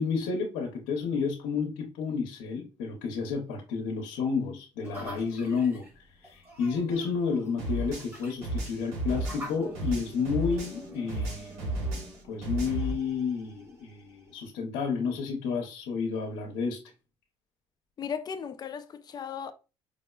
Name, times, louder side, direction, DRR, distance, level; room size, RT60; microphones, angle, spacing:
voice 1, 0.0-5.8 6.2-11.7 12.3-16.8, left 5 dB, 85° left, 0.7 m, -31 dB
sound 1, 4.8-14.4, equal, 20° right, 1.3 m, -48 dB
sound 2, 7.6-10.8 11.1-12.9, right 1 dB, 85° right, 1.0 m, -33 dB
voice 2, 18.0-19.5, left 7 dB, 40° left, 0.4 m, -36 dB
4.9 x 2.1 x 2.3 m
cardioid pair, 100°, 11 cm